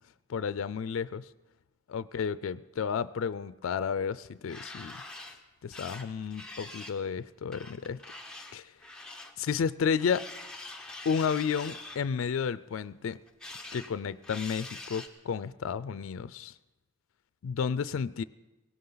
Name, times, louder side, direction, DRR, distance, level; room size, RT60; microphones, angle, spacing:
voice 1, 0.3-1.2 1.9-5.0 5.6-8.0 8.5-8.6 9.4-10.2 11.1-13.2 13.7-16.5 17.4-18.2, left 6 dB, 80° left, 16 dB, 0.4 m, -32 dB
sound 1, 4.3-5.4 5.7-7.0 7.5-9.3 10.0-12.0 13.1-13.9 14.2-15.1, left 2 dB, 5° left, 0.9 m, -44 dB
17.5 x 17.0 x 3.9 m, 1.1 s
head